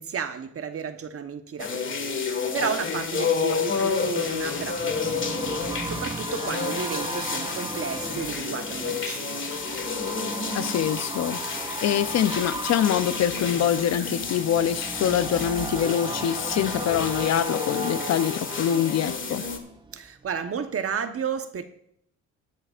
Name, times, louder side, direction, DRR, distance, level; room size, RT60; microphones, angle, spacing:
voice 1, 0.0-9.4 19.9-21.6, right 6 dB, 50° right, 1.1 m, -33 dB
sound 1, 1.6-19.6, left 5 dB, 40° left, 1.8 m, -30 dB
sound 2, 2.5-20.3 20.7-20.8, right 3 dB, 15° right, 0.7 m, -37 dB
voice 2, 10.5-19.5, left 9 dB, 60° left, 0.7 m, -25 dB
19.0 x 10.0 x 2.5 m
cardioid pair, 90°, 30 cm